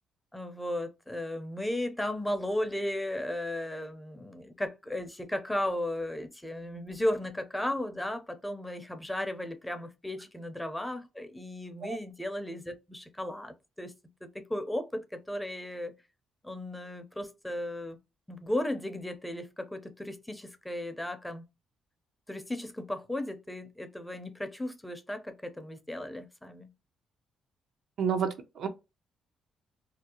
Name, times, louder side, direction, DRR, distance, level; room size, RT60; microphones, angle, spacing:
voice 1, 0.3-13.9 14.2-15.9 16.4-18.0 18.3-21.5 22.3-26.7, left 1 dB, 10° left, 0.5 m, -35 dB
voice 2, 28.0-28.7, right 7 dB, 70° right, 0.4 m, -30 dB
2.5 x 2.0 x 2.8 m
cardioid pair, 90°, 0 cm